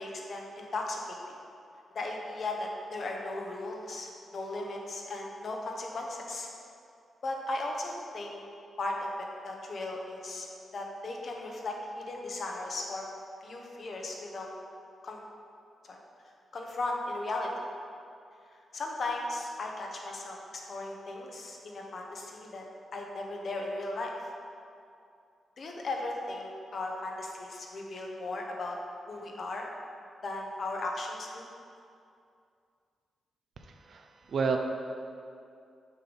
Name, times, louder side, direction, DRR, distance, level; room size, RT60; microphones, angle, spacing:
voice 1, 0.0-1.4 1.9-6.5 7.2-8.4 8.8-10.5 10.7-13.1 13.4-14.5 15.0-15.2 15.8-16.0 16.5-17.7 18.5-22.7 22.9-24.3 25.6-28.8 29.1-29.7 30.2-31.4, left 2 dB, 60° left, 0 dB, 1.0 m, -36 dB
voice 2, 33.8-34.6, right 5 dB, 70° right, 4 dB, 0.6 m, -30 dB
6.4 x 3.7 x 5.3 m, 2.5 s
cardioid pair, 60°, 0 cm